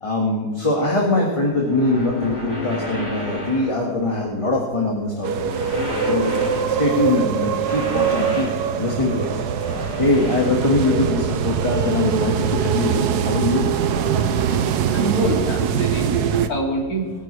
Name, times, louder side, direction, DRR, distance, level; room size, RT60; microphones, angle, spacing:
voice 1, 0.0-5.3 6.0-6.4 6.8-9.4 10.0-13.7, left 2 dB, 20° left, -2 dB, 1.9 m, -22 dB
sound 1, 1.6-4.3 5.3-6.9 7.6-8.7 9.5-11.0 12.4-12.5 14.2-14.3 15.9-16.6, left 1 dB, 40° left, 4.7 m, -32 dB
sound 2, 5.2-16.5, right 7 dB, 80° right, 1.3 m, -22 dB
voice 2, 14.9-17.1, right 1 dB, 65° left, -2 dB, 3.4 m, -25 dB
22.5 x 10.0 x 3.4 m, 1.4 s
omnidirectional pair, 1.7 m